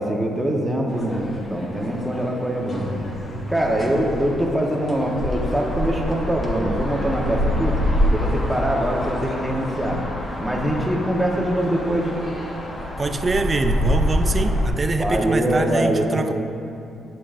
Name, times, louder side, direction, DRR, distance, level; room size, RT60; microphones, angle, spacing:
voice 1, 0.0-2.8 3.5-7.8 8.1-10.0 10.4-12.1 15.0-16.2, right 1 dB, 5° right, -2 dB, 1.1 m, -23 dB
sound 1, 0.9-14.7, left 1 dB, 30° left, 1.1 m, -26 dB
voice 2, 13.0-16.3, right 3 dB, 30° right, 8 dB, 0.4 m, -24 dB
11.0 x 6.6 x 2.6 m, 2.6 s
cardioid pair, 90°, 0 cm